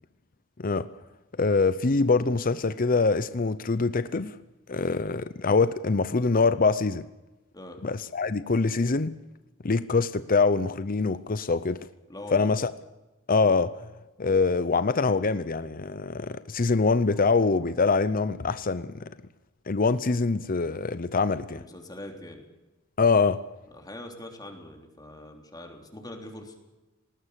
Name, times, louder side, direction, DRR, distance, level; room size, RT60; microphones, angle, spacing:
voice 1, 1.4-4.4 4.7-7.0 7.8-9.1 9.6-11.8 12.3-12.7 13.3-13.7 14.2-19.1 19.7-21.6 23.0-23.4, left 4 dB, 45° left, 0.7 m, -24 dB
voice 2, 12.1-12.5 21.5-22.4 23.7-26.5, left 1 dB, 20° left, 3.4 m, -42 dB
20.0 x 19.0 x 8.2 m
head